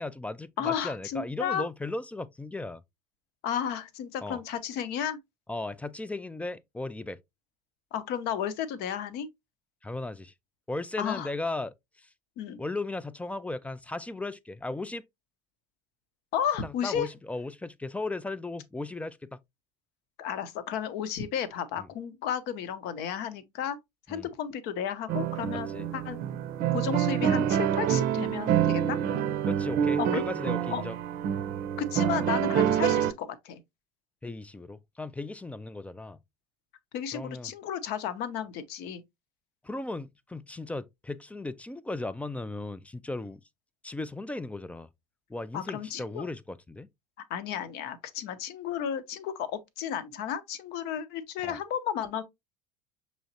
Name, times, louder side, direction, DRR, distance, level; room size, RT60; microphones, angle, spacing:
voice 1, 0.0-2.8 4.2-4.4 5.5-7.2 9.8-10.3 10.7-12.1 12.6-15.0 16.6-19.4 24.1-24.3 25.5-25.9 29.4-31.0 32.5-32.6 34.2-36.2 37.1-37.5 39.6-43.4 43.8-44.9 45.3-46.9 51.4-51.6, left 2 dB, 5° left, 0.3 m, -36 dB
voice 2, 0.6-1.7 3.4-5.2 7.9-9.3 11.0-11.3 12.4-12.6 16.3-17.1 20.2-23.8 24.1-25.7 25.9-26.2 26.7-29.0 30.0-30.1 30.7-30.8 31.8-33.6 36.9-39.0 45.5-46.3 47.3-52.2, left 8 dB, 55° left, 0.8 m, -33 dB
sound 1, 25.1-33.1, right 9 dB, 50° right, 0.6 m, -27 dB
6.3 x 3.1 x 2.7 m
hypercardioid pair, 70°, 20 cm